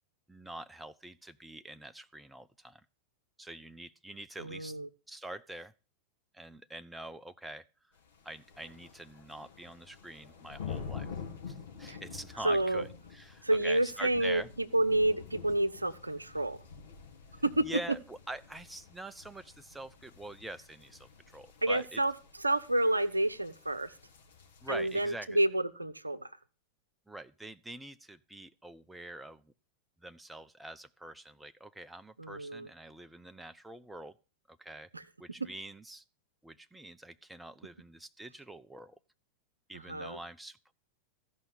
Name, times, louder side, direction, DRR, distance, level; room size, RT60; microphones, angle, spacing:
voice 1, 0.3-2.8 3.4-4.8 5.1-5.7 6.3-7.6 8.2-11.1 11.5-12.9 13.1-14.5 17.6-22.0 24.6-25.4 27.1-29.5 30.0-34.1 34.5-34.9 35.2-36.0 36.4-39.0 39.7-40.7, right 1 dB, 5° right, 12 dB, 0.5 m, -45 dB
voice 2, 4.4-4.9 11.9-12.0 12.4-12.9 13.4-16.6 17.4-17.7 21.6-24.0 24.7-26.3 32.2-32.7 34.9-35.0 35.4-35.5 39.7-40.2, right 1 dB, 85° right, 12 dB, 0.7 m, -29 dB
sound 1, 8.0-25.1, left 6 dB, 65° left, 2.9 m, -48 dB
15.0 x 5.5 x 7.1 m, 0.36 s
figure-of-eight pair, 90°, 0 cm